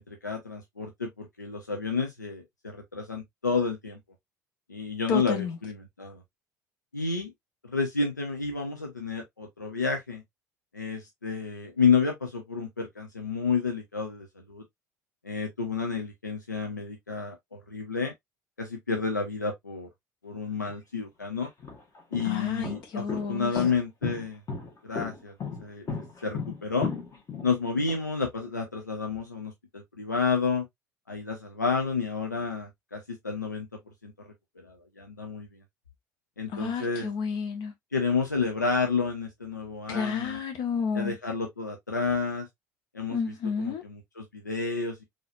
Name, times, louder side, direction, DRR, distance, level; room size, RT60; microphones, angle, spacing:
voice 1, 0.1-4.0 4.7-6.2 6.9-7.3 7.6-10.2 10.7-14.6 15.2-18.1 18.6-19.9 20.2-21.5 22.1-24.4 24.8-25.3 25.6-25.9 26.2-26.9 27.4-30.7 31.1-33.7 34.0-34.1 34.6-35.5 36.4-37.1 37.9-40.4 40.9-42.5 42.9-45.0, left 5 dB, 85° left, 0.6 m, -30 dB
voice 2, 5.1-5.6 22.2-23.5 36.5-37.7 39.9-41.1 43.1-43.8, left 6 dB, 55° left, 1.1 m, -30 dB
sound 1, 20.7-20.8 21.4-28.0, left 5 dB, 35° left, 1.6 m, -35 dB
3.9 x 3.2 x 2.4 m
figure-of-eight pair, 60°, 9 cm